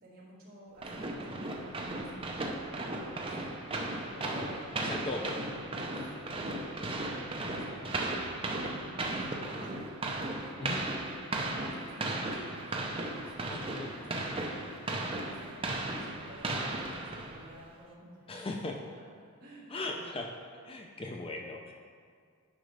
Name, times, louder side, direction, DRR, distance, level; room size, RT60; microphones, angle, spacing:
voice 1, 0.0-5.1 6.1-9.8 10.3-14.7 15.2-15.6 15.9-18.2 18.9-20.0, right 1 dB, 40° right, -6 dB, 1.9 m, -52 dB
sound 1, 0.8-17.6, right 2 dB, 25° right, 0.5 m, -36 dB
voice 2, 4.2-5.4 10.6-10.8 13.5-14.0 18.3-18.8 19.7-20.3 20.6-21.7, left 2 dB, 25° left, 2 dB, 0.4 m, -38 dB
10.0 x 5.1 x 3.3 m, 2.1 s
head